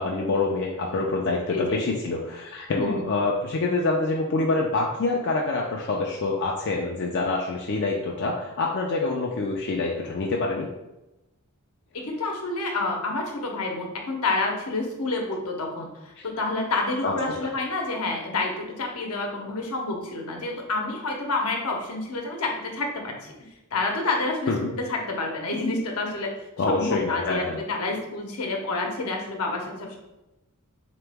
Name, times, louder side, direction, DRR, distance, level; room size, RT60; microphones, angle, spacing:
voice 1, 0.0-10.7 17.0-17.1 17.4-17.5 24.5-24.7 26.6-27.6, left 3 dB, 55° left, -1 dB, 0.4 m, -26 dB
voice 2, 11.9-23.3 23.7-26.3 26.7-30.0, left 3 dB, 80° left, 1 dB, 0.8 m, -28 dB
3.8 x 2.9 x 3.4 m, 0.99 s
head